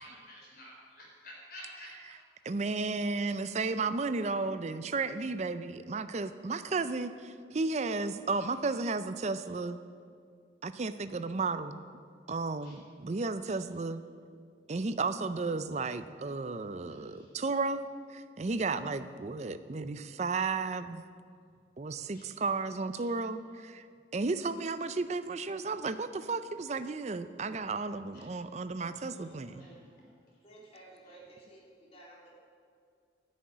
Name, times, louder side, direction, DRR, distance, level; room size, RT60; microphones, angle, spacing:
voice 1, 0.0-2.2 8.4-8.5 9.4-9.5 12.6-12.8 13.4-13.6 16.8-17.4 22.1-22.3 22.9-23.1 28.1-28.3 28.7-28.9 29.6-30.1 31.0-31.2, left 1 dB, 55° left, -3 dB, 3.9 m, -52 dB
voice 2, 2.5-7.3 7.5-9.8 10.6-11.8 12.3-14.0 14.7-21.0 21.8-23.8 24.1-29.7, right 3 dB, 35° right, 12 dB, 0.5 m, -33 dB
voice 3, 29.1-29.9 30.4-32.3, right 2 dB, 30° left, -3 dB, 2.8 m, -55 dB
11.0 x 6.4 x 9.3 m, 2.1 s
head